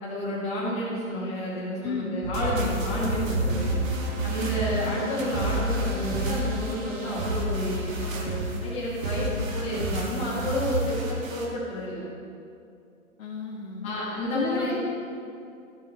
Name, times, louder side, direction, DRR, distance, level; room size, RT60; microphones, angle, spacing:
voice 1, 0.0-3.8 4.2-12.0 13.8-14.8, left 1 dB, 15° left, -6 dB, 2.0 m, -30 dB
voice 2, 1.8-2.2 3.5-4.0 9.2-9.5 13.2-13.9 14.3-14.8, left 4 dB, 70° left, -3 dB, 1.5 m, -33 dB
sound 1, 2.2-11.5, right 1 dB, 65° right, 2.1 m, -30 dB
sound 2, 2.7-7.2, right 1 dB, 25° right, 1.5 m, -40 dB
13.5 x 6.6 x 4.2 m, 2.5 s
hypercardioid pair, 150°, 42 cm